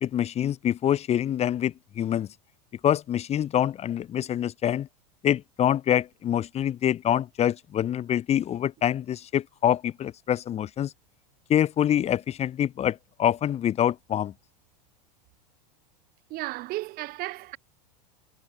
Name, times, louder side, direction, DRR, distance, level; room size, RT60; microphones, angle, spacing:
voice 1, 0.0-2.3 2.8-4.9 5.2-10.9 11.5-14.3, left 10 dB, 30° left, 2.9 m, -25 dB
voice 2, 16.3-17.6, right 19 dB, 45° right, 6.2 m, -34 dB
hypercardioid pair, 120°, 21 cm